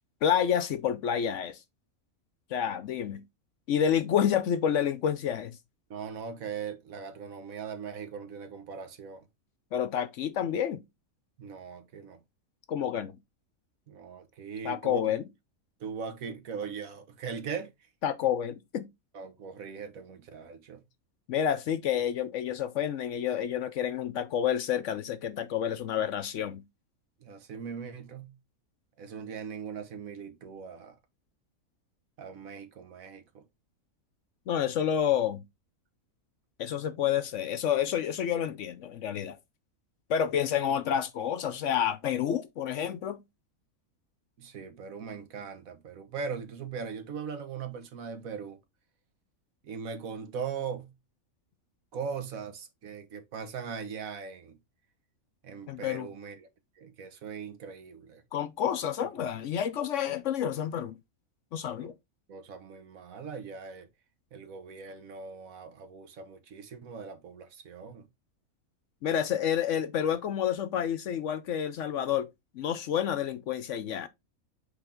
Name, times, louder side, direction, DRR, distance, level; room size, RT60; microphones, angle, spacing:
voice 1, 0.2-1.6 2.5-3.2 3.7-5.6 9.7-10.8 12.7-13.2 14.6-15.3 18.0-18.9 21.3-26.6 34.5-35.4 36.6-39.4 40.1-43.2 55.7-56.1 58.3-61.0 61.5-61.9 69.0-72.3 72.5-74.1, left 9 dB, 65° left, 0.9 m, -29 dB
voice 2, 5.9-9.2 11.4-12.2 13.9-15.2 15.8-17.7 19.1-20.8 27.2-28.3 29.0-31.0 32.2-33.4 44.4-48.6 49.6-50.9 51.9-54.6 55.4-56.5 56.8-58.2 61.8-61.9 62.3-63.9 64.3-68.0, right 6 dB, 70° right, 1.4 m, -40 dB
7.9 x 3.5 x 3.6 m
omnidirectional pair, 1.5 m